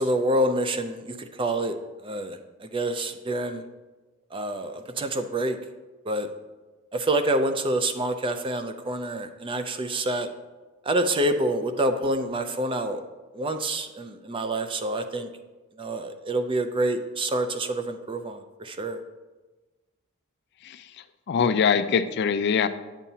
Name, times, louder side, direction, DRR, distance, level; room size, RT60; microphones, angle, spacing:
voice 1, 0.0-1.8 2.0-3.6 4.3-5.6 6.1-6.3 6.9-10.3 10.9-13.0 13.3-15.3 15.8-19.0, right 1 dB, 25° right, 8 dB, 0.4 m, -27 dB
voice 2, 21.3-22.7, left 6 dB, 50° left, 11 dB, 0.4 m, -23 dB
9.1 x 7.1 x 2.8 m, 1.2 s
head